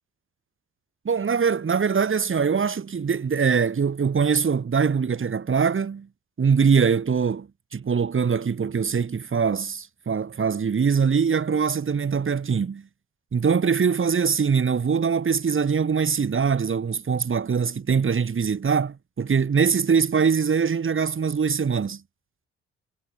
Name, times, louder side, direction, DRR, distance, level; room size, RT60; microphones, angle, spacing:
voice 1, 1.0-6.1 6.4-12.9 13.3-22.0, right 6 dB, 40° right, 3.3 m, -23 dB
hypercardioid pair, 45°, 32 cm